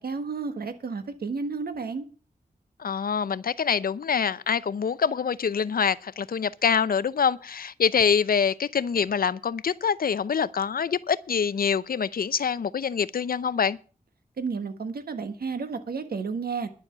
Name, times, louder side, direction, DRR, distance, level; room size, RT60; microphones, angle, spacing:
voice 1, 0.0-2.0 14.4-16.7, right 5 dB, 85° right, 1.4 m, -32 dB
voice 2, 2.8-13.8, left 6 dB, 75° left, 0.7 m, -25 dB
11.0 x 7.1 x 7.9 m
wide cardioid pair, 85°, 15 cm